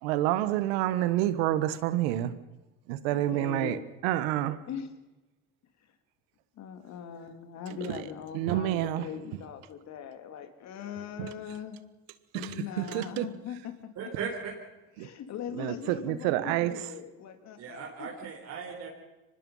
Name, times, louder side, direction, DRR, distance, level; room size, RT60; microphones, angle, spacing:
voice 1, 0.0-2.3 2.9-4.6 7.7-8.0 8.3-9.1 11.2-11.3 12.3-13.3 15.0-15.1 15.5-16.9, right 14 dB, 85° right, 14 dB, 1.4 m, -28 dB
voice 2, 3.1-3.8 4.7-4.9 6.6-11.8 12.3-14.1 15.0-18.1, left 8 dB, 65° left, 8 dB, 3.0 m, -41 dB
voice 3, 14.0-14.5 17.6-18.9, right 6 dB, 65° right, -1 dB, 4.5 m, -37 dB
24.0 x 20.0 x 5.6 m, 1.1 s
supercardioid pair, 75°, 30 cm